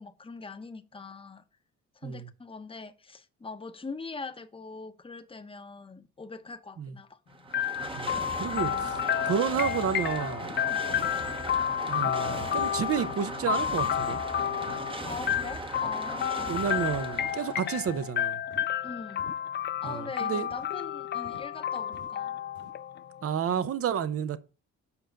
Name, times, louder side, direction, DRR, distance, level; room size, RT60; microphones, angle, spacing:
voice 1, 0.0-1.4 2.0-7.2 8.5-8.8 10.7-10.8 15.0-16.6 18.8-19.2 19.8-22.4, left 4 dB, 20° left, 0.9 m, -42 dB
sound 1, 7.3-18.1, right 2 dB, 15° right, 0.9 m, -38 dB
sound 2, 7.5-23.3, left 10 dB, 35° left, 0.4 m, -31 dB
voice 2, 8.0-10.5 11.8-14.2 16.5-18.4 19.8-20.5 23.2-24.4, right 8 dB, 50° right, 0.8 m, -31 dB
sound 3, 10.4-10.6 10.9-11.1 11.5-11.6 12.0-12.2 12.5-12.7 13.0-13.2 13.5-13.7 14.0-14.2 14.6-14.8 15.2-15.4 15.8-16.0 16.5-16.7 17.2-17.4 17.9-18.1 18.5-18.7 19.2-19.4 19.8-20.0 20.5-20.7 21.2-21.5 21.9-22.1 22.5-22.7, equal, 70° right, 3.8 m, -47 dB
7.2 x 5.1 x 5.1 m
cardioid pair, 90°, 30 cm